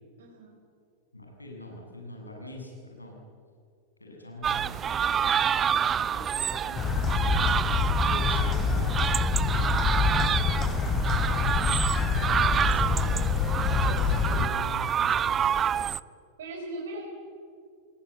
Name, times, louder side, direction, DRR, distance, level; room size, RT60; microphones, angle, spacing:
voice 1, 0.2-0.5 16.4-17.0, right 2 dB, 65° right, -1 dB, 5.1 m, -40 dB
voice 2, 1.1-3.2 4.0-7.5 8.0-11.7 12.1-13.1 13.7-15.7, left 2 dB, 90° left, 0 dB, 7.6 m, -42 dB
sound 1, 4.4-16.0, right 8 dB, 25° right, 0.6 m, -28 dB
sound 2, 6.8-14.5, left 5 dB, 25° left, 2.9 m, -26 dB
30.0 x 21.0 x 8.3 m, 2.3 s
figure-of-eight pair, 95°, 0 cm